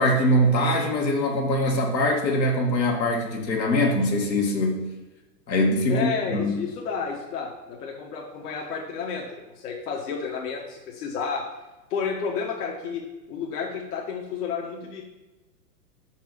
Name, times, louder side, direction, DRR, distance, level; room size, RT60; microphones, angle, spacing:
voice 1, 0.0-4.9 5.5-6.6, left 1 dB, 85° left, 0 dB, 1.6 m, -23 dB
voice 2, 5.9-11.4 11.9-13.0 13.3-15.0, left 5 dB, 65° left, -1 dB, 1.2 m, -31 dB
5.4 x 4.6 x 5.9 m, 1.1 s
hypercardioid pair, 115°, 50 cm